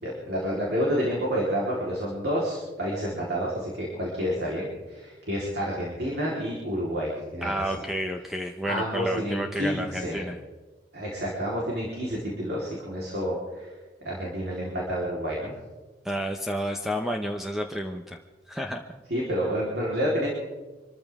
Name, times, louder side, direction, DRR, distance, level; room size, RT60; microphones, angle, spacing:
voice 1, 0.0-7.7 8.7-10.2 10.9-13.7 14.0-15.5 19.1-20.3, equal, 65° right, -4 dB, 3.9 m, -29 dB
voice 2, 7.4-10.4 16.0-18.2 18.5-19.0, equal, ahead, 3 dB, 0.8 m, -31 dB
25.5 x 14.0 x 3.7 m, 1.2 s
head